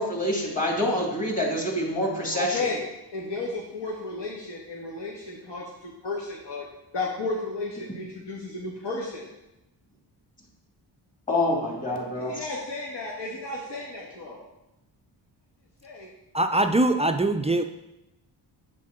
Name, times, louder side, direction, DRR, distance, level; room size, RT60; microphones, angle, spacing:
voice 1, 0.0-2.6 11.3-12.5, left 1 dB, 15° left, -1 dB, 2.2 m, -26 dB
voice 2, 2.3-2.8 3.1-6.6 6.9-9.3 12.1-14.4 15.8-16.1, left 3 dB, 65° left, -3 dB, 1.4 m, -33 dB
voice 3, 16.3-17.6, right 2 dB, 15° right, 6 dB, 0.3 m, -22 dB
7.6 x 3.7 x 6.6 m, 0.94 s
cardioid pair, 85°, 45 cm